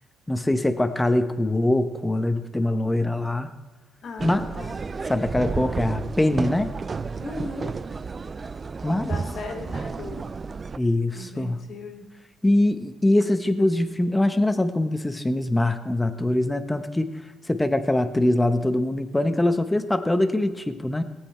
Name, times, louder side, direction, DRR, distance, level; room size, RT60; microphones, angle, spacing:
voice 1, 0.3-3.5 4.2-4.5 5.1-6.7 8.8-9.1 10.8-11.6 12.4-17.1 17.5-21.0, left 1 dB, 10° left, 8 dB, 0.9 m, -23 dB
voice 2, 4.0-4.8 7.2-7.7 9.0-10.4 11.1-12.2, left 3 dB, 60° left, 3 dB, 2.1 m, -37 dB
sound 1, 4.2-10.8, right 4 dB, 35° right, 0.4 m, -32 dB
18.0 x 8.5 x 4.4 m, 1.2 s
cardioid pair, 90°, 0 cm